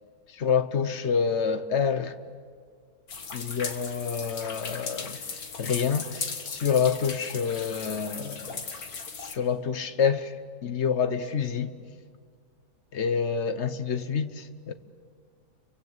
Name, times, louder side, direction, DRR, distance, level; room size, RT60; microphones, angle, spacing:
voice 1, 0.3-2.2 3.3-8.7 9.2-10.3 10.6-11.7 12.9-14.7, left 6 dB, 50° left, 1.3 m, -27 dB
sound 1, 3.1-9.4, left 5 dB, 80° left, 2.2 m, -37 dB
30.0 x 24.0 x 8.0 m
omnidirectional pair, 1.6 m